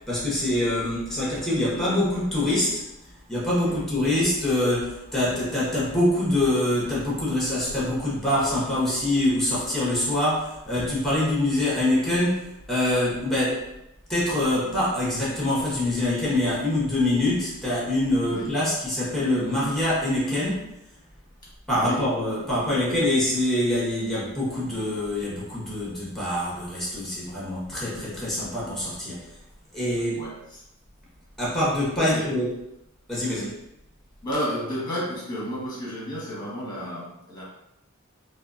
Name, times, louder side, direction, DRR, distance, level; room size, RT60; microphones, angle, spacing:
voice 1, 0.1-2.8 3.3-13.6 14.1-20.7 21.7-29.2 29.7-30.3 31.4-32.6 33.1-33.5, left 1 dB, ahead, -7 dB, 1.3 m, -25 dB
voice 2, 18.3-18.7 21.7-22.1 30.1-30.6 32.1-32.3 34.2-37.4, equal, 20° left, -6 dB, 1.3 m, -32 dB
4.1 x 2.4 x 2.5 m, 0.85 s
head